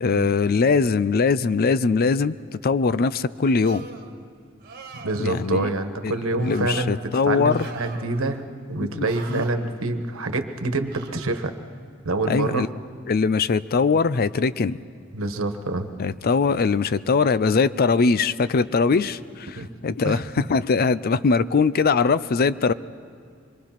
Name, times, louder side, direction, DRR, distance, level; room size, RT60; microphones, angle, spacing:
voice 1, 0.0-2.4 2.6-3.9 5.2-5.7 6.0-7.7 8.9-9.4 9.8-9.9 12.3-12.7 13.1-14.8 16.0-22.7, left 4 dB, 45° left, 16 dB, 0.5 m, -21 dB
sound 1, 3.6-4.1 4.6-5.3 6.4-6.9 7.5-8.3 9.0-9.5 10.9-11.4, right 4 dB, 45° right, 1.6 m, -41 dB
voice 2, 5.0-11.5 12.0-12.7 15.1-15.9 19.5-19.7 20.0-20.5, right 2 dB, 80° right, 7 dB, 1.3 m, -26 dB
25.5 x 22.5 x 5.9 m, 2.2 s
head